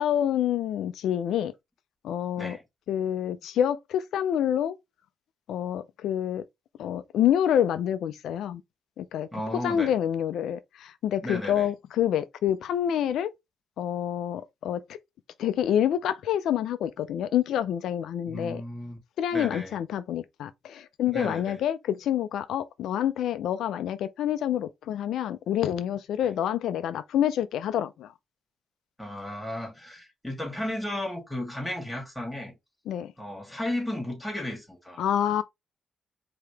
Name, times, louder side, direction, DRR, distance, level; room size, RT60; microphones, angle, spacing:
voice 1, 0.0-1.5 2.0-2.6 2.9-4.8 5.5-6.4 6.8-8.6 9.0-9.3 9.6-13.3 13.8-14.8 15.4-18.6 19.2-28.1 32.9-33.1 35.0-35.4, left 10 dB, 80° left, 0.4 m, -27 dB
voice 2, 9.3-9.9 11.2-11.7 18.3-19.0 19.3-19.8 21.1-21.6 29.0-32.5 33.2-35.0, left 1 dB, 5° left, 2.7 m, -34 dB
5.0 x 2.9 x 3.4 m
cardioid pair, 75°, 0 cm